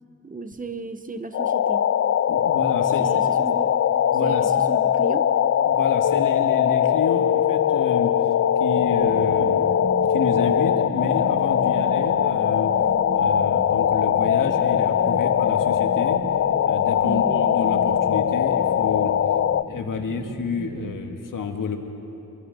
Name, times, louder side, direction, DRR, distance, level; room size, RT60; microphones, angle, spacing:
voice 1, 0.2-1.9 3.0-3.8 4.2-5.3 17.0-17.4, right 3 dB, 25° right, 9 dB, 0.9 m, -34 dB
sound 1, 1.3-19.6, left 9 dB, 50° left, 0.4 m, -21 dB
voice 2, 2.3-3.1 4.1-4.5 5.7-8.2 8.6-9.6 10.1-12.7 13.1-16.2 16.7-19.1 19.7-21.8, left 5 dB, 85° left, 4 dB, 2.0 m, -29 dB
sound 2, 8.8-21.0, right 4 dB, 45° right, 1.2 m, -37 dB
26.5 x 23.0 x 5.3 m, 2.9 s
wide cardioid pair, 160°, 32 cm